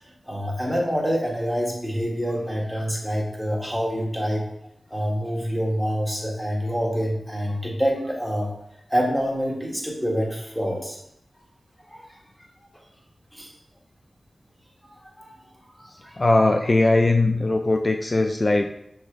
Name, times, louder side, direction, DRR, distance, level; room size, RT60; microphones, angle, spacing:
voice 1, 0.2-4.5 4.9-8.5 8.9-11.0 11.9-12.2 13.3-13.5 14.8-15.4 15.8-16.1, equal, ahead, -1 dB, 1.4 m, -26 dB
voice 2, 16.2-18.7, left 2 dB, 45° left, 4 dB, 0.3 m, -20 dB
6.2 x 2.4 x 3.6 m, 0.75 s
cardioid pair, 45°, 0 cm